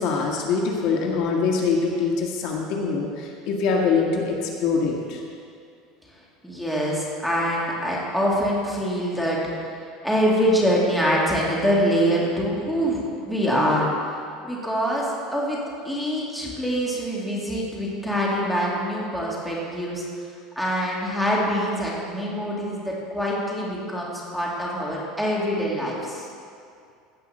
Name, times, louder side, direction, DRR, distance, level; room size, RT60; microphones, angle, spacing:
voice 1, 0.0-5.2, left 4 dB, 60° left, 0 dB, 1.6 m, -24 dB
voice 2, 6.4-9.4 10.0-13.9 14.4-15.6 15.8-20.0 20.6-26.3, equal, ahead, -5 dB, 2.3 m, -24 dB
16.5 x 5.6 x 6.5 m, 2.4 s
cardioid pair, 155°, 0 cm